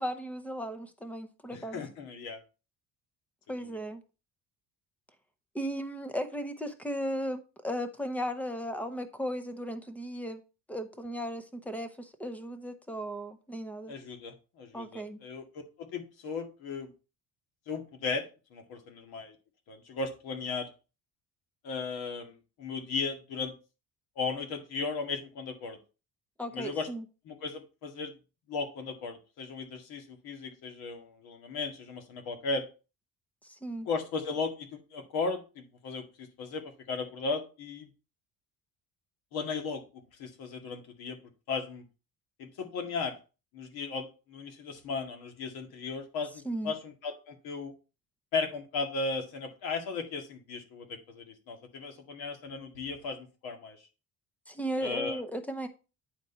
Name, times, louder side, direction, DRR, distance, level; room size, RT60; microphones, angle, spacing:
voice 1, 0.0-1.8 3.5-4.0 5.5-10.4 10.7-13.9 14.7-15.2 26.4-27.0 33.6-33.9 46.4-46.7 54.5-55.7, equal, 5° left, 0.7 m, -36 dB
voice 2, 1.5-2.4 13.9-15.5 15.8-16.9 17.7-18.2 18.5-19.4 19.7-20.7 21.6-23.5 24.2-25.8 26.5-26.9 27.3-28.1 28.5-32.6 33.9-37.9 39.3-41.2 41.5-41.8 42.4-43.1 43.5-47.7 48.3-53.8 54.8-55.2, left 4 dB, 75° left, 2.0 m, -36 dB
9.2 x 4.3 x 4.3 m
cardioid pair, 155°, 38 cm